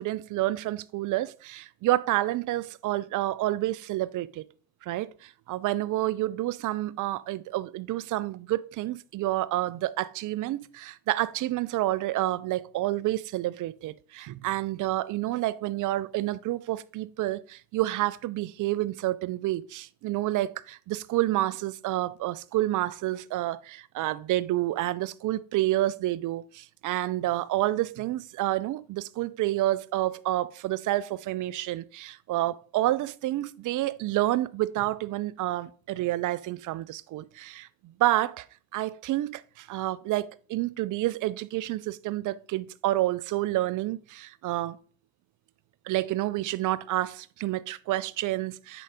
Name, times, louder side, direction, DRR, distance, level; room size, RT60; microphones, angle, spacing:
voice 1, 0.0-4.5 4.8-38.5 38.7-44.8 45.9-48.8, right 16 dB, 45° right, 0.5 m, -29 dB
9.8 x 3.9 x 3.5 m
figure-of-eight pair, 45°, 44 cm